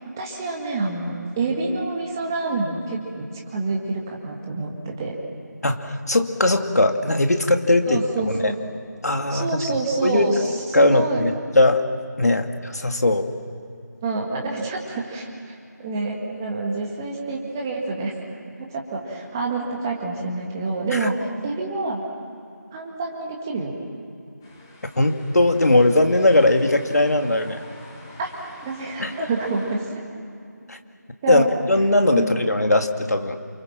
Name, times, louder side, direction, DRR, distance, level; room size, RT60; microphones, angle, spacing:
voice 1, 0.2-5.2 7.9-8.6 9.3-11.2 14.0-18.2 18.6-22.0 22.7-23.7 28.2-29.9 31.2-31.5 32.1-32.4, right 3 dB, 10° right, -1 dB, 1.9 m, -27 dB
voice 2, 5.6-8.5 9.0-9.5 10.0-10.5 10.7-11.8 12.2-13.3 20.9-21.1 25.0-27.6 29.0-29.3 30.7-30.8 31.3-33.4, left 2 dB, 60° left, 5 dB, 2.3 m, -19 dB
sound 1, 24.4-29.8, left 2 dB, 10° left, 2.1 m, -45 dB
28.5 x 25.0 x 7.5 m, 2.5 s
figure-of-eight pair, 165°, 10 cm